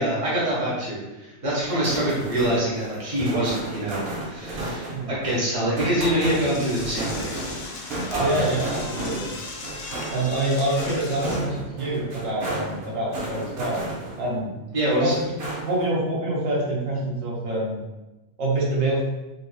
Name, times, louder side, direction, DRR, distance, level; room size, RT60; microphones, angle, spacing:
voice 1, 0.0-7.3 7.8-8.4 14.7-15.2, right 1 dB, 25° right, -7 dB, 1.1 m, -25 dB
sound 1, 1.6-14.4 14.8-15.9, right 2 dB, 55° right, 0.8 m, -33 dB
Door / Toilet flush, 6.2-11.4, left 3 dB, 85° left, 0.4 m, -37 dB
voice 2, 8.2-9.3 10.1-13.8 14.2-14.5 15.0-15.3 15.6-17.8 18.4-19.0, right 1 dB, 75° right, -5 dB, 1.2 m, -26 dB
4.0 x 2.7 x 2.3 m, 1.1 s
omnidirectional pair, 1.4 m